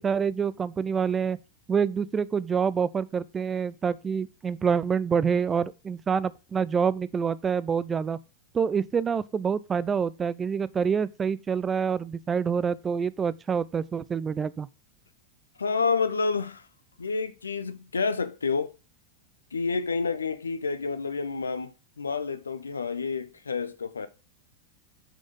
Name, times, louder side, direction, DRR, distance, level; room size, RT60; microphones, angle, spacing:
voice 1, 0.0-1.4 1.7-8.2 8.5-14.7, right 6 dB, 20° right, 0.5 m, -27 dB
voice 2, 15.6-16.7 17.0-18.7 19.5-21.7 22.0-24.1, left 4 dB, 75° left, 0.9 m, -29 dB
8.4 x 6.2 x 3.6 m
figure-of-eight pair, 90°, 0 cm